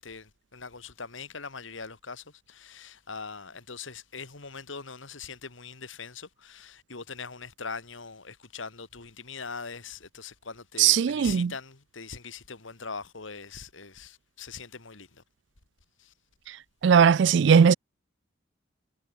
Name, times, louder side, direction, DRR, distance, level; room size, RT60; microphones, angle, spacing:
voice 1, 0.0-15.2 16.0-16.1, left 5 dB, 80° left, 2.2 m, -42 dB
voice 2, 10.8-11.5 16.8-17.7, right 7 dB, 65° right, 0.3 m, -18 dB
head